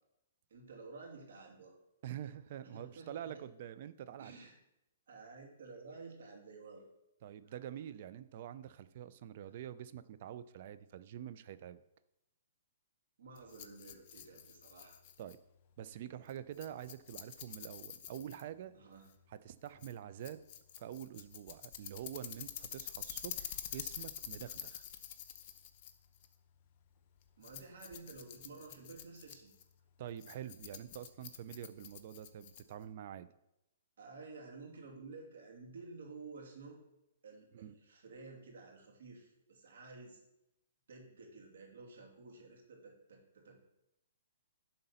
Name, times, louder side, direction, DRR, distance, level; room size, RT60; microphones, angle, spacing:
voice 1, 0.5-1.7 2.6-3.4 4.2-4.5 5.1-6.8 7.4-7.5 13.2-15.0 18.7-19.1 27.4-29.5 34.0-36.8 37.2-40.2 40.9-43.6, right 3 dB, 75° right, 0 dB, 2.7 m, -52 dB
voice 2, 2.0-4.3 7.2-11.8 15.2-15.4 15.8-18.7 19.3-20.4 20.8-24.9 30.0-33.3 37.5-37.7, right 10 dB, 50° right, 13 dB, 0.5 m, -46 dB
Rattle, 13.4-32.9, left 10 dB, 40° left, 0.8 m, -49 dB
11.0 x 4.0 x 5.7 m, 0.87 s
hypercardioid pair, 140°, 0 cm